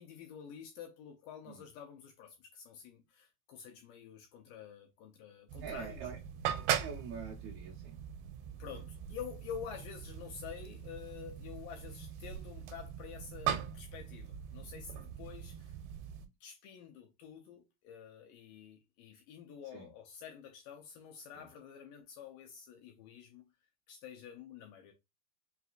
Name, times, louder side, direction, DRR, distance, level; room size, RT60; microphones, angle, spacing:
voice 1, 0.0-6.0 8.6-15.8 16.4-23.4 23.9-24.9, left 8 dB, 80° left, 2.0 m, -49 dB
sound 1, 5.5-16.3, right 10 dB, 90° right, 2.5 m, -40 dB
voice 2, 5.6-6.2 6.8-8.0 19.7-19.9 21.3-21.5, right 6 dB, 70° right, 1.9 m, -45 dB
5.7 x 2.8 x 2.4 m
omnidirectional pair, 4.3 m